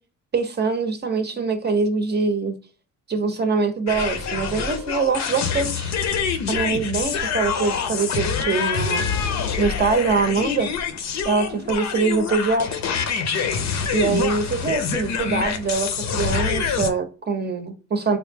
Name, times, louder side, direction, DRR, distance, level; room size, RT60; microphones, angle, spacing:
voice 1, 0.3-2.5 3.1-5.9 6.5-9.1 9.6-10.7 11.2-12.8 13.9-18.2, right 4 dB, 35° right, 0.6 m, -23 dB
sound 1, 3.9-16.9, left 6 dB, 65° left, 0.6 m, -26 dB
3.4 x 2.0 x 3.3 m
cardioid pair, 90°, 30 cm